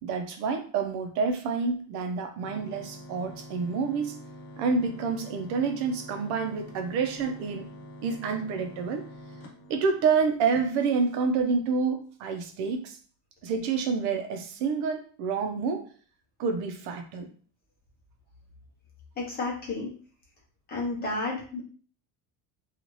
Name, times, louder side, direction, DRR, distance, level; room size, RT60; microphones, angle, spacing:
voice 1, 0.0-4.2 4.6-7.7 8.0-9.1 9.7-13.0 13.4-15.9 16.4-17.3, right 5 dB, 70° right, 6 dB, 0.6 m, -28 dB
sound 1, 2.4-10.5, equal, 80° left, 0.9 m, -46 dB
voice 2, 19.2-19.9 20.7-21.6, left 2 dB, 25° left, -3 dB, 0.8 m, -31 dB
2.7 x 2.4 x 3.0 m, 0.43 s
cardioid pair, 170°, 41 cm